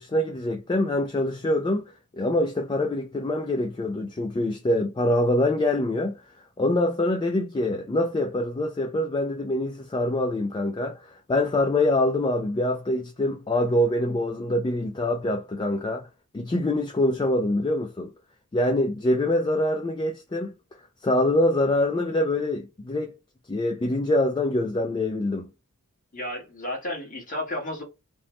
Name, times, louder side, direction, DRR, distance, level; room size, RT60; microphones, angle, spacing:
voice 1, 0.0-1.8 2.1-6.2 6.6-16.1 16.3-18.1 18.5-20.5 21.0-23.2 23.5-25.5, left 1 dB, 20° left, 0.3 m, -25 dB
voice 2, 26.1-27.8, left 1 dB, 35° left, 1.2 m, -32 dB
3.0 x 2.0 x 3.0 m
head